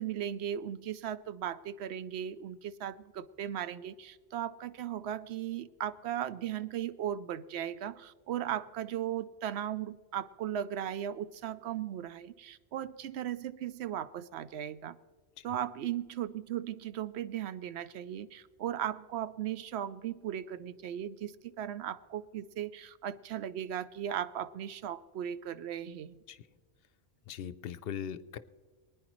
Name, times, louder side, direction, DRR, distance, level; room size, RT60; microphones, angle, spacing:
voice 1, 0.0-15.0 15.4-26.2, right 10 dB, 85° right, 14 dB, 0.8 m, -37 dB
voice 2, 27.3-28.4, left 9 dB, 70° left, 14 dB, 0.7 m, -40 dB
23.0 x 9.8 x 3.0 m, 1.4 s
omnidirectional pair, 1.1 m